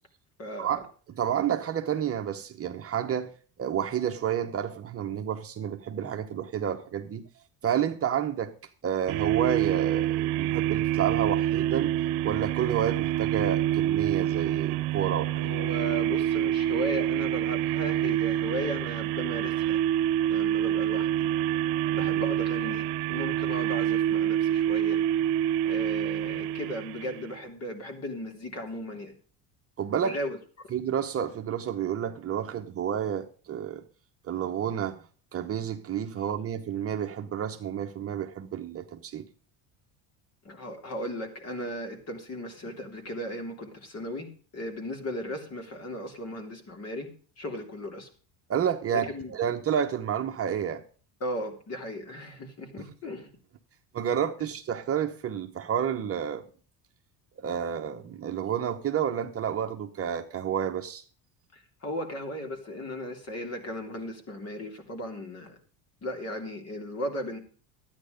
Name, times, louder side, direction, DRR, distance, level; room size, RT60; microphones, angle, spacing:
voice 1, 0.4-0.8 15.3-19.8 20.3-21.3 21.9-25.0 25.6-29.1 30.0-30.7 40.4-47.1 47.4-48.1 48.9-49.3 51.2-53.3 61.5-65.6 66.0-67.4, equal, 35° left, 3.1 m, -36 dB
voice 2, 1.2-3.3 3.6-7.2 7.6-8.5 8.8-11.9 12.2-15.5 22.0-22.1 29.8-30.2 30.7-33.8 34.2-35.0 35.3-39.3 48.5-50.8 53.9-56.4 57.4-61.0, right 9 dB, 35° right, 1.0 m, -30 dB
sound 1, 9.1-27.4, right 12 dB, 80° right, 0.8 m, -27 dB
12.5 x 9.7 x 5.2 m
cardioid pair, 135°, 41 cm